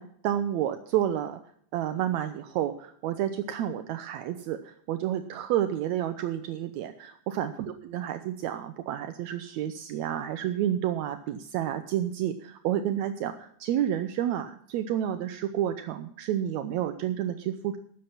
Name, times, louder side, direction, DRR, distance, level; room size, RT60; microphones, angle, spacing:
voice 1, 0.0-1.4 1.7-17.8, right 11 dB, 75° right, 9 dB, 1.9 m, -30 dB
13.0 x 8.6 x 5.8 m, 0.63 s
omnidirectional pair, 3.4 m